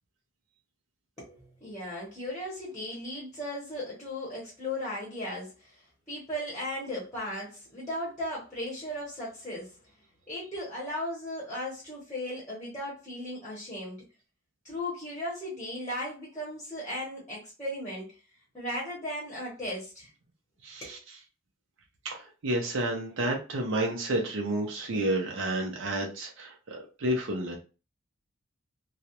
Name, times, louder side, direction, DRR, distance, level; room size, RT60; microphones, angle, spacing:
voice 1, 1.2-9.8 10.3-14.0 14.6-18.1 18.5-20.1 20.8-21.0, left 1 dB, 15° left, 0.8 m, -36 dB
voice 2, 20.6-21.0 22.0-27.6, right 1 dB, 65° right, 0.5 m, -30 dB
2.3 x 2.0 x 2.8 m
head